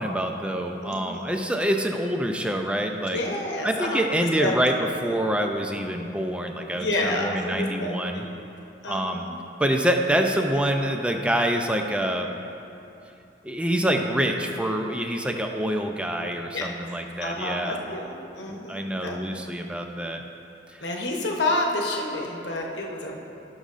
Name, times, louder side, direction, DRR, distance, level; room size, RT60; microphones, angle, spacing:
voice 1, 0.0-3.2 3.6-4.7 5.0-8.2 8.9-9.2 9.6-12.3 13.4-17.8 18.5-20.2, right 1 dB, 5° right, 3 dB, 0.5 m, -26 dB
voice 2, 0.8-1.3 3.1-4.6 6.7-8.3 8.8-9.4 16.5-16.7 17.2-19.5 20.8-23.2, left 1 dB, 65° left, 0 dB, 1.0 m, -29 dB
17.0 x 6.3 x 2.5 m, 2.7 s
head